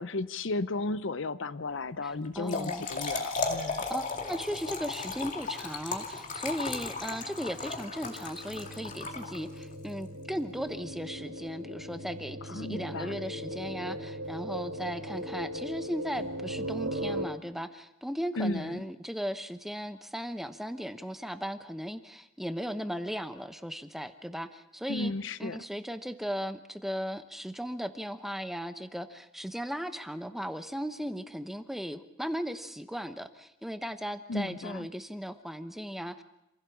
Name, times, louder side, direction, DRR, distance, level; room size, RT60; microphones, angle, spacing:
voice 1, 0.0-3.8 12.5-13.1 18.4-18.8 24.9-25.6 34.3-34.9, left 2 dB, 65° left, 14 dB, 0.7 m, -34 dB
voice 2, 2.0-2.9 3.9-25.1 25.4-36.2, equal, ahead, 9 dB, 0.9 m, -37 dB
Trickle dribble / Fill (with liquid), 2.2-9.7, left 4 dB, 40° left, 2.4 m, -35 dB
sound 1, 4.1-17.2, equal, 90° right, 3.9 m, -40 dB
27.0 x 16.0 x 7.2 m, 0.90 s
head